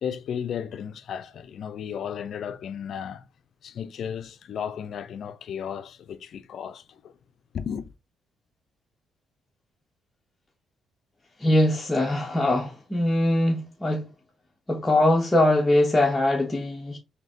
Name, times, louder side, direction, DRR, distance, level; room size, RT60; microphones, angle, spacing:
voice 1, 0.0-3.3 3.6-7.1 7.5-7.9, left 8 dB, 65° left, 0.4 m, -34 dB
voice 2, 11.4-14.1 14.7-17.0, left 1 dB, 15° left, 0.7 m, -22 dB
3.8 x 2.8 x 3.5 m
cardioid pair, 90°, 0 cm